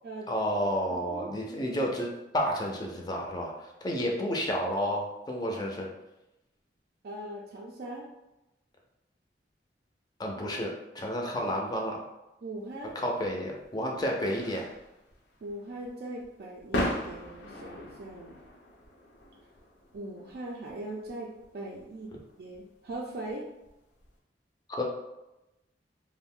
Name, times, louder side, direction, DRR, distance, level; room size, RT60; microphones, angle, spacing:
voice 1, 0.3-3.5 3.8-5.9 10.2-12.0 13.0-14.6 24.7-24.8, equal, 25° left, 0 dB, 0.4 m, -31 dB
voice 2, 0.9-1.3 7.0-8.1 12.4-13.0 15.4-18.4 19.9-23.5, right 1 dB, 60° right, -3 dB, 0.4 m, -40 dB
sound 1, 12.8-24.1, left 1 dB, 85° left, 0.5 m, -40 dB
2.4 x 2.1 x 3.6 m, 0.94 s
head